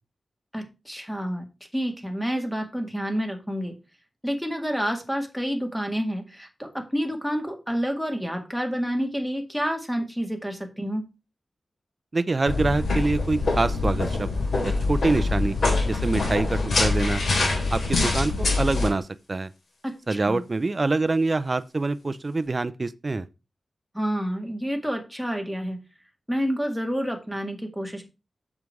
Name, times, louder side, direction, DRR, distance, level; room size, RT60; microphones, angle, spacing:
voice 1, 0.5-1.5 1.7-3.7 4.2-11.1 19.8-20.4 23.9-25.8 26.3-28.0, equal, ahead, 1.9 m, -29 dB
voice 2, 12.1-14.3 14.6-15.6 15.9-17.2 17.7-19.5 20.1-23.3, right 3 dB, 35° right, 0.5 m, -25 dB
sound 1, 12.5-18.9, left 3 dB, 70° left, 3.7 m, -24 dB
7.3 x 6.1 x 4.7 m
wide cardioid pair, 110°, 0 cm